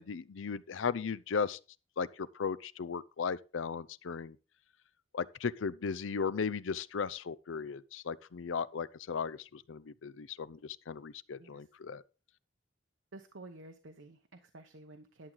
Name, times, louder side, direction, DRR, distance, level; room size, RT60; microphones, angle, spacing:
voice 1, 0.0-1.6 2.0-4.4 5.1-12.0, left 5 dB, 90° left, 0.5 m, -36 dB
voice 2, 11.4-11.7 13.1-15.3, right 2 dB, 85° right, 1.0 m, -52 dB
11.5 x 7.6 x 3.9 m
head